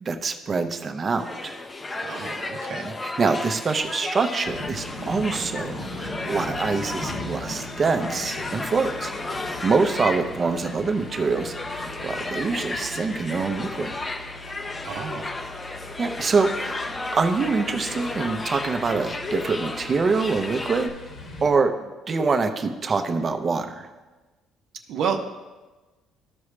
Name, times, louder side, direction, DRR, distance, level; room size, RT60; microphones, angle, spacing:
voice 1, 0.0-1.5 2.7-9.1 9.6-13.9 16.0-16.8 17.1-20.9 21.4-23.9, right 4 dB, 30° right, 7 dB, 0.7 m, -25 dB
sound 1, 1.2-20.9, left 2 dB, 20° left, 0.6 m, -34 dB
voice 2, 2.0-2.9 14.8-15.3 24.9-25.2, right 6 dB, 70° right, 4 dB, 0.7 m, -30 dB
sound 2, 4.4-21.5, left 2 dB, 50° left, 1.3 m, -39 dB
14.0 x 4.8 x 3.2 m, 1.2 s
cardioid pair, 120°, 0 cm